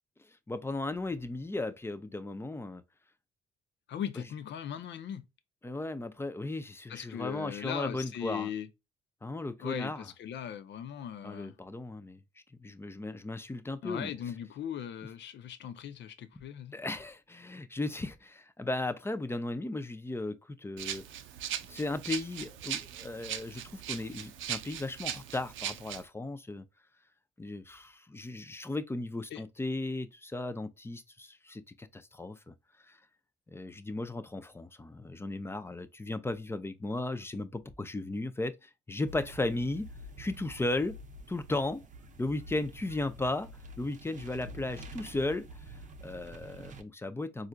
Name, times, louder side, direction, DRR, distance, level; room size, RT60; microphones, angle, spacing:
voice 1, 0.5-2.8 4.2-4.3 5.6-8.5 9.2-10.1 11.2-12.2 12.6-14.1 16.7-21.0 21.7-26.7 27.4-32.5 32.9-33.0 33.5-39.9 40.2-41.0 41.3-41.8 42.2-43.5 43.8-47.5, left 2 dB, 10° left, 0.5 m, -36 dB
voice 2, 3.9-5.2 6.9-8.7 9.6-11.6 13.8-16.7 29.3-29.4, left 9 dB, 65° left, 0.6 m, -39 dB
Rattle (instrument), 20.8-26.0, right 10 dB, 80° right, 0.5 m, -39 dB
sound 1, 39.1-46.8, right 2 dB, 40° right, 0.6 m, -48 dB
4.2 x 2.5 x 2.2 m
cardioid pair, 90°, 20 cm